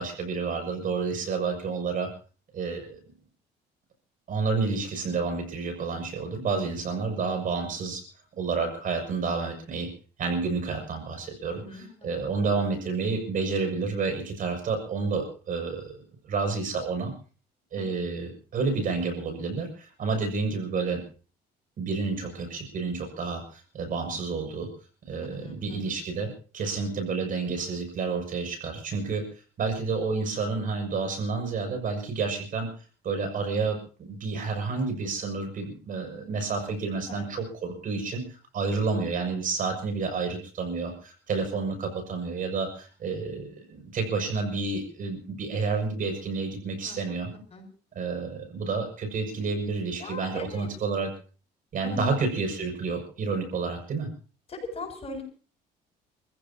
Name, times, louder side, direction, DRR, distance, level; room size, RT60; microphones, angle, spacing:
voice 1, 0.0-2.1 2.5-3.0 4.3-8.0 8.4-9.9 10.2-16.0 16.2-17.1 17.7-21.0 21.8-24.7 25.0-29.3 29.6-32.7 33.0-47.3 47.9-51.1 51.7-54.1, right 4 dB, 55° right, 5 dB, 6.2 m, -30 dB
voice 2, 11.6-12.3 25.3-25.9 37.1-37.2 46.8-47.2 47.5-47.7 50.0-50.7 51.9-52.2 54.5-55.2, left 3 dB, 35° left, 3 dB, 7.2 m, -39 dB
29.5 x 15.5 x 2.8 m, 0.38 s
cardioid pair, 110°, 17 cm